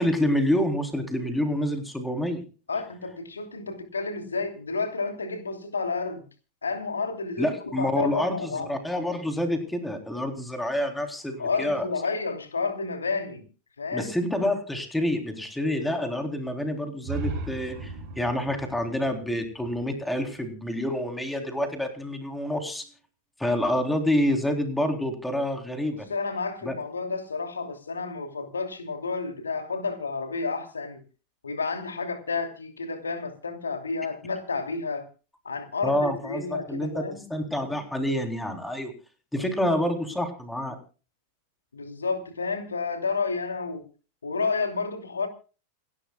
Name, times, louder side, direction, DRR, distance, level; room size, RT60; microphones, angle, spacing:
voice 1, 0.0-2.4 7.4-11.9 13.9-22.8 23.4-26.1 26.6-26.7 35.8-38.9 39.3-40.8, left 1 dB, 5° left, 5 dB, 3.6 m, -27 dB
voice 2, 2.7-6.2 6.6-8.7 11.4-13.4 13.8-14.1 25.9-31.0 31.4-35.1 35.4-37.2 39.4-39.8 41.7-43.8 44.2-45.3, left 4 dB, 75° left, 6 dB, 2.7 m, -31 dB
sound 1, 17.0-20.9, right 3 dB, 45° right, 4.8 m, -37 dB
29.0 x 12.0 x 2.3 m, 0.35 s
figure-of-eight pair, 90°, 0 cm